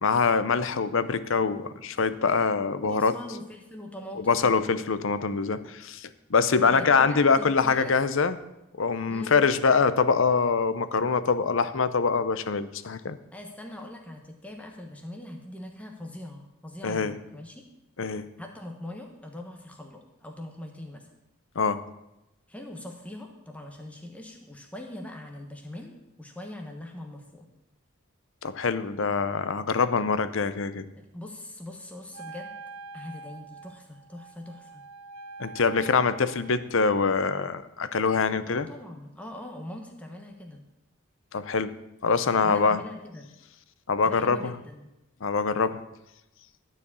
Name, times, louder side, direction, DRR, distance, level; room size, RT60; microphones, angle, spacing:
voice 1, 0.0-3.1 4.3-8.3 8.8-13.2 16.8-17.2 18.0-18.3 21.6-21.8 28.4-30.9 35.4-38.7 41.3-41.7 42.0-42.8 43.9-44.5 45.2-45.8, left 5 dB, 60° left, 13 dB, 0.6 m, -24 dB
voice 2, 2.8-4.5 6.6-8.0 9.1-9.4 13.3-17.6 18.4-21.1 22.5-27.5 31.0-32.5 32.9-34.8 38.4-40.6 42.4-43.3 44.0-44.9, left 1 dB, 5° left, 2 dB, 1.1 m, -42 dB
Wind instrument woodwind instrument, 32.1-36.7, right 4 dB, 80° right, 0.7 m, -44 dB
12.0 x 5.0 x 8.3 m, 0.91 s
head